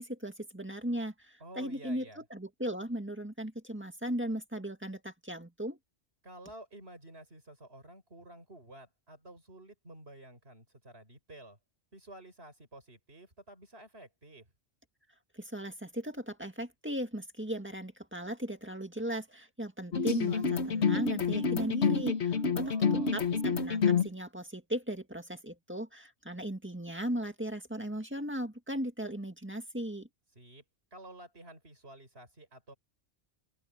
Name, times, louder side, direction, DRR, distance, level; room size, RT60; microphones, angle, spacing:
voice 1, 0.0-5.8 15.3-30.1, equal, 10° right, 1.9 m, -37 dB
voice 2, 1.4-2.2 6.2-11.6 11.9-14.5 22.5-23.2 30.4-30.6 30.9-32.7, right 1 dB, 55° right, 7.1 m, -51 dB
sound 1, 19.9-24.1, left 5 dB, 65° left, 1.8 m, -28 dB
open air
omnidirectional pair, 1.2 m